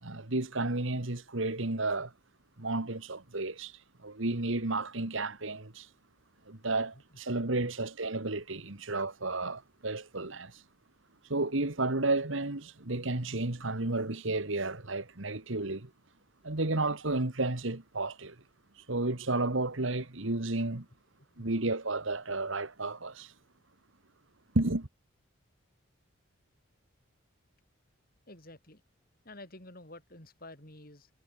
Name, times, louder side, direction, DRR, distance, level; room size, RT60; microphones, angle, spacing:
voice 1, 0.0-2.1 2.6-3.7 4.0-5.9 6.5-10.6 11.3-15.9 16.4-18.4 18.9-20.9 21.4-23.3 24.5-24.9, right 2 dB, 70° right, 1.9 m, -32 dB
voice 2, 28.3-28.8 29.2-31.1, left 2 dB, 45° left, 5.6 m, -50 dB
head